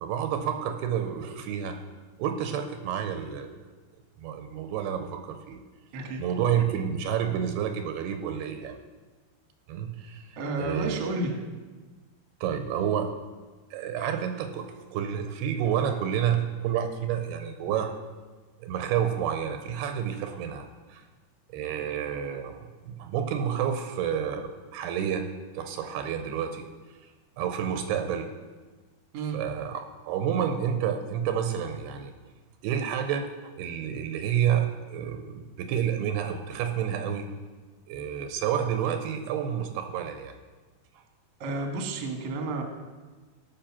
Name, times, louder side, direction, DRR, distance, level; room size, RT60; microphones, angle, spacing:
voice 1, 0.0-1.8 2.2-3.6 4.2-5.6 6.2-8.8 9.7-10.3 10.6-11.0 12.4-13.1 13.7-14.6 14.9-18.0 18.6-21.0 21.5-25.2 25.5-26.6 27.4-28.3 29.3-32.1 32.6-33.3 33.6-37.3 37.9-40.3, right 9 dB, 85° right, 6 dB, 2.6 m, -29 dB
voice 2, 10.4-11.3 29.1-29.4 41.4-42.6, right 2 dB, 60° right, 3 dB, 1.7 m, -31 dB
13.5 x 5.7 x 5.9 m, 1.3 s
omnidirectional pair, 4.7 m